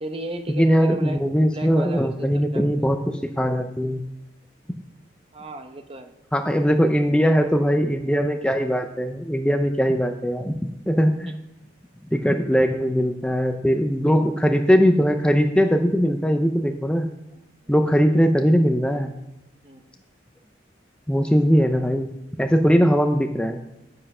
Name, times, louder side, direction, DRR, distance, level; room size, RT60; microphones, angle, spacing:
voice 1, 0.0-1.2 1.5-2.9 5.3-6.1 17.3-17.8 19.6-19.9 22.6-22.9, right 1 dB, 30° right, 6 dB, 0.9 m, -36 dB
voice 2, 0.5-4.0 6.3-11.3 12.1-17.1 17.7-19.2 21.1-23.6, equal, 5° left, 5 dB, 0.5 m, -20 dB
10.0 x 7.6 x 5.5 m, 0.95 s
head